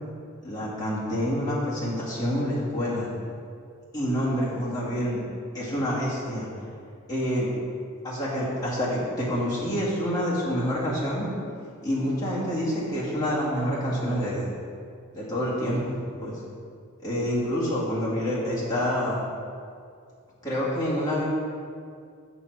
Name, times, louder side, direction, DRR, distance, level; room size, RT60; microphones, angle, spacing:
voice 1, 0.4-3.1 3.9-5.2 5.5-6.5 7.1-7.5 8.0-11.3 11.8-14.5 15.1-15.9 16.2-16.4 17.0-19.2 20.4-21.3, equal, 15° left, -8 dB, 2.2 m, -27 dB
7.1 x 6.3 x 4.8 m, 2.2 s
head